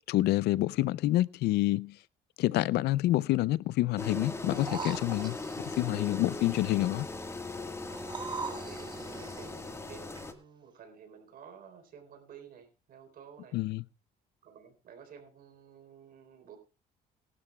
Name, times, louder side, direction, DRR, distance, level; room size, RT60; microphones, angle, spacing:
voice 1, 0.1-2.0 2.4-5.4 5.8-7.1 13.5-13.8, left 16 dB, 75° left, 0.5 m, -27 dB
Engine, 4.0-10.3, left 2 dB, 15° left, 1.6 m, -39 dB
sound 1, 4.5-5.8 7.9-9.5 10.2-10.3, right 5 dB, 25° right, 1.7 m, -41 dB
voice 2, 8.0-13.6 14.4-16.6, right 7 dB, 60° right, 3.9 m, -52 dB
20.5 x 12.5 x 2.3 m
cardioid pair, 110°, 17 cm